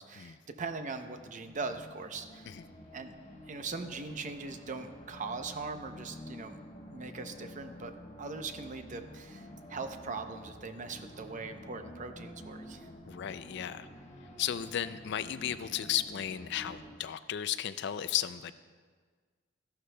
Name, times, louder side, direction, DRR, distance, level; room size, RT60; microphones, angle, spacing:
voice 1, 0.0-2.5 2.9-3.1 3.5-6.6 6.9-7.9 8.2-12.9, right 4 dB, 40° right, 7 dB, 0.6 m, -40 dB
sound 1, 0.8-17.0, equal, 40° left, 1.0 m, -50 dB
voice 2, 13.1-13.9 14.4-18.5, left 10 dB, 65° left, 13 dB, 0.4 m, -34 dB
14.0 x 11.5 x 2.2 m, 1.6 s
head